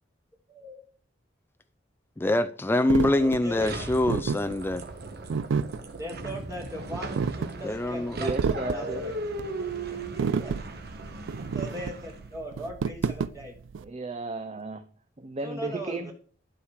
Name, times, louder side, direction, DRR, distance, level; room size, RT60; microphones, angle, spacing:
voice 1, 0.5-0.8 3.1-3.8 6.0-9.2 9.9-10.6 11.5-13.6 15.4-16.1, equal, 15° right, 1.3 m, -39 dB
voice 2, 2.2-4.8 7.6-8.2, left 1 dB, 10° left, 0.4 m, -25 dB
sound 1, 2.9-13.8, right 5 dB, 80° right, 0.4 m, -31 dB
sound 2, 3.6-12.3, right 2 dB, 55° right, 1.2 m, -38 dB
voice 3, 8.2-9.0 13.8-14.8 15.2-16.1, right 3 dB, 35° right, 0.6 m, -34 dB
11.5 x 4.9 x 4.8 m
head